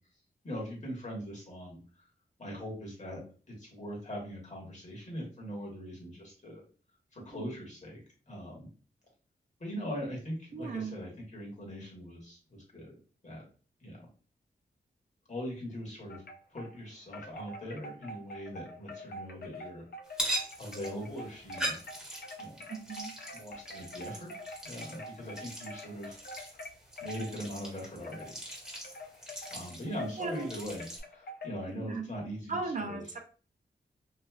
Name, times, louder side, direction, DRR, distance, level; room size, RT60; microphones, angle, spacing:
voice 1, 0.4-1.8 2.4-3.2 3.6-6.6 7.1-8.0 8.3-8.7 9.6-12.9 13.2-13.4 13.8-14.0 15.3-16.2 16.5-19.8 20.6-21.8 22.4-22.6 23.3-24.3 24.6-26.2 27.0-28.4 29.5-30.9 31.1-33.0, equal, 40° left, -3 dB, 1.4 m, -41 dB
voice 2, 10.5-11.0 22.7-23.1 30.2-30.5 31.7-32.1 32.5-33.2, right 4 dB, 45° right, 3 dB, 0.5 m, -37 dB
Wind chime, 16.1-16.8 17.1-31.7, left 1 dB, 60° left, 0.5 m, -46 dB
sound 1, 20.1-31.0, right 1 dB, 5° right, 1.1 m, -41 dB
3.0 x 2.6 x 2.3 m, 0.39 s
wide cardioid pair, 95°, 18 cm